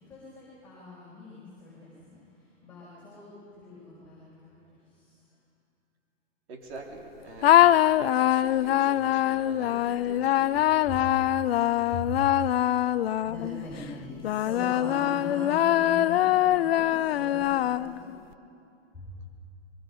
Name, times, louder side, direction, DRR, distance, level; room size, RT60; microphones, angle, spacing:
voice 1, 0.1-2.1 2.6-5.0 10.9-11.0 11.9-12.1 13.2-18.1 19.0-19.1, left 3 dB, 5° left, -10 dB, 5.4 m, -41 dB
voice 2, 6.5-11.9, right 3 dB, 60° right, 1 dB, 3.7 m, -46 dB
sound 1, 7.4-13.7 14.2-18.2, left 12 dB, 55° left, 0.5 m, -23 dB
23.0 x 23.0 x 5.6 m, 2.6 s
hypercardioid pair, 160°, 37 cm